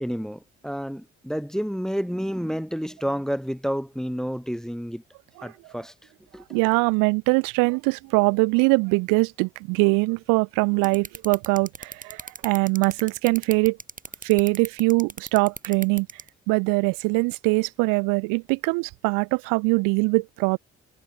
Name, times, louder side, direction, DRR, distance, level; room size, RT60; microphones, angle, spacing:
voice 1, 0.0-5.0 5.4-5.9 6.3-6.4, equal, ahead, 0.8 m, -30 dB
voice 2, 6.5-13.8 14.2-16.1 16.5-20.6, right 29 dB, 90° right, 0.7 m, -22 dB
sound 1, 10.8-16.3, right 3 dB, 25° right, 3.1 m, -36 dB
hypercardioid pair, 45°, 32 cm